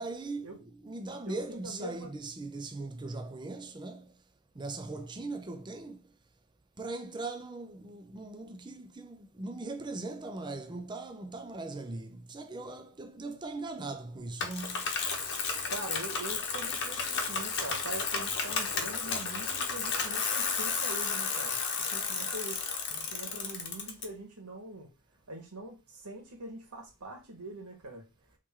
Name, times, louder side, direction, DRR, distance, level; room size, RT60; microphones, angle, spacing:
voice 1, 0.0-4.2 4.5-6.1 6.8-14.9, right 3 dB, 20° right, 0.5 m, -40 dB
voice 2, 1.2-2.1 15.7-21.6 21.9-24.9 25.3-28.1, right 1 dB, 85° right, 1.6 m, -43 dB
Bicycle, 14.4-24.0, left 5 dB, 55° left, 0.9 m, -32 dB
4.3 x 3.2 x 3.7 m
head